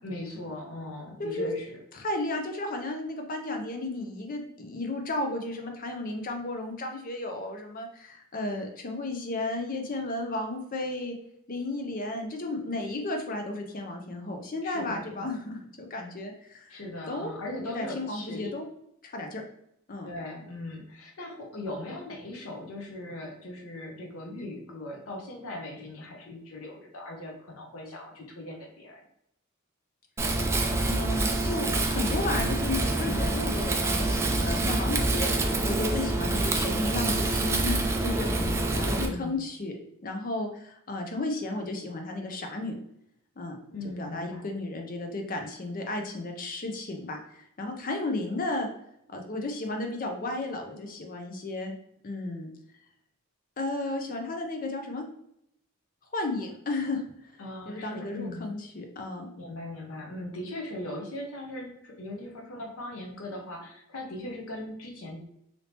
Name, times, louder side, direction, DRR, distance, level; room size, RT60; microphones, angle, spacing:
voice 1, 0.0-1.8 14.6-15.3 16.7-18.5 20.0-29.0 38.2-39.4 43.7-44.4 57.4-58.5 59.4-65.2, left 1 dB, 90° left, 0 dB, 0.7 m, -39 dB
voice 2, 1.2-1.5 1.9-11.1 11.5-16.8 17.1-17.3 17.6-18.7 19.0-19.4 19.9-20.1 30.8-38.3 38.7-39.8 40.0-42.7 43.4-43.6 44.0-48.7 49.1-51.8 52.0-52.5 53.6-55.0 56.1-57.4 57.7-59.3, left 2 dB, 45° left, 3 dB, 0.6 m, -33 dB
Wind, 30.2-39.1, right 2 dB, 15° right, 0.3 m, -26 dB
3.3 x 2.8 x 2.8 m, 0.76 s
head